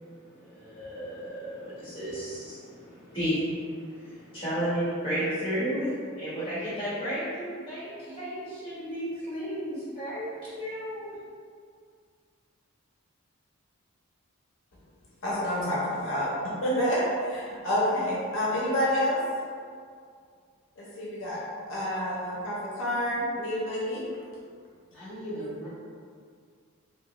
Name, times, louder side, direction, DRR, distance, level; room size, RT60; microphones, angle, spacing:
voice 1, 0.3-10.3 10.6-11.1, equal, 25° left, -11 dB, 1.2 m, -33 dB
voice 2, 15.2-16.3 16.6-19.2 20.8-21.4 21.7-24.0, equal, 60° left, -7 dB, 0.7 m, -28 dB
voice 3, 24.9-25.7, equal, 5° left, -14 dB, 0.7 m, -37 dB
2.8 x 2.3 x 3.0 m, 2.2 s
head